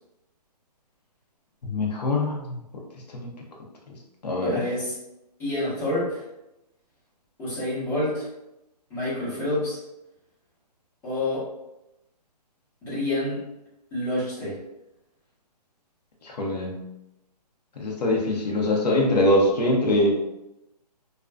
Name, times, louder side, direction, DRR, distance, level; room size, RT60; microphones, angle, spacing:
voice 1, 1.6-2.6 3.1-3.3 4.2-4.6 16.2-16.8 17.8-20.2, left 1 dB, 70° left, -1 dB, 0.9 m, -23 dB
voice 2, 4.4-4.9 5.4-6.2 7.4-8.3 8.9-9.8 11.0-11.5 12.8-13.4 13.9-14.6, left 1 dB, 10° left, -12 dB, 1.0 m, -28 dB
2.5 x 2.2 x 2.2 m, 0.91 s
hypercardioid pair, 160°, 21 cm